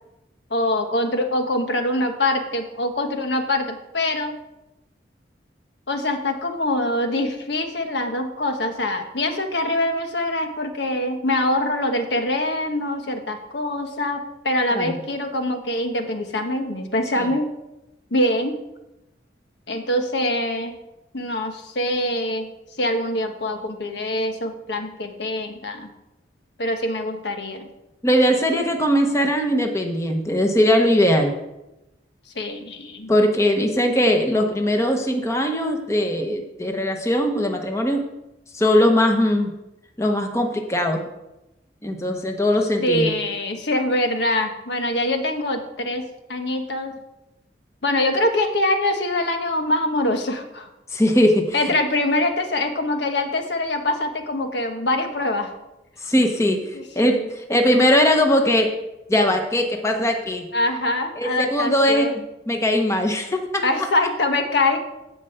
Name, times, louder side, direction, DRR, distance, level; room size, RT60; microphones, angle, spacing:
voice 1, 0.5-4.4 5.9-17.5 18.1-18.6 19.7-20.8 21.1-22.5 22.8-25.9 26.6-27.7 32.3-33.1 42.8-46.0 46.3-46.9 47.8-50.7 51.5-55.5 56.7-57.2 60.5-62.1 63.6-64.8, left 1 dB, 70° left, 5 dB, 1.4 m, -24 dB
voice 2, 28.0-31.3 33.1-38.0 38.5-39.5 40.0-41.0 41.8-43.2 50.9-51.7 56.0-58.7 59.1-60.5 61.2-62.1 62.5-63.6, equal, 15° left, 3 dB, 1.1 m, -20 dB
11.5 x 5.5 x 7.9 m, 0.94 s
head